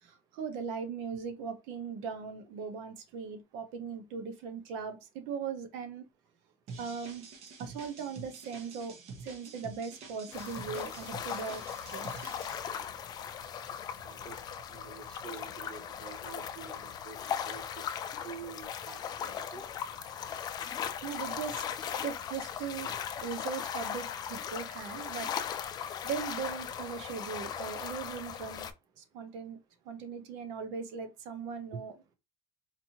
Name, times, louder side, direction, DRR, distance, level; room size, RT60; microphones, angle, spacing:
voice 1, 0.0-6.0 6.8-7.2 7.6-8.9 9.2-11.6 11.9-12.2 20.4-20.5 21.0-21.6 22.0-25.3 26.0-28.7 29.0-29.6 29.9-31.9, right 6 dB, 75° right, 0.9 m, -39 dB
sound 1, 6.7-12.6, right 4 dB, 55° right, 1.0 m, -47 dB
sound 2, 10.3-28.7, left 8 dB, 35° left, 0.4 m, -38 dB
voice 2, 14.0-14.4 14.7-17.9 18.2-19.6 31.7-31.8, right 6 dB, 30° right, 0.5 m, -47 dB
4.2 x 2.7 x 2.8 m
cardioid pair, 155°, 12 cm